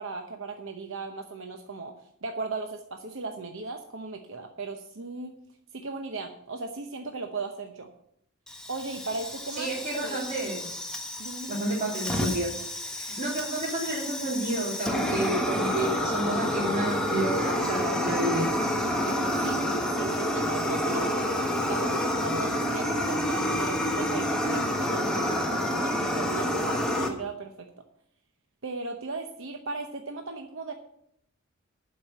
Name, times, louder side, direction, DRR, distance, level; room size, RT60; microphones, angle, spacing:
voice 1, 0.0-1.9 2.2-5.4 5.7-7.9 8.7-10.2 11.2-11.6 19.4-19.7 19.9-27.7 28.6-30.7, right 3 dB, 60° right, 4 dB, 0.9 m, -37 dB
Fire, 8.5-27.1, equal, 5° left, 1.3 m, -29 dB
voice 2, 9.6-10.6 11.5-12.5 12.9-18.5, right 1 dB, 30° right, -8 dB, 3.1 m, -30 dB
11.5 x 5.3 x 7.9 m, 0.72 s
head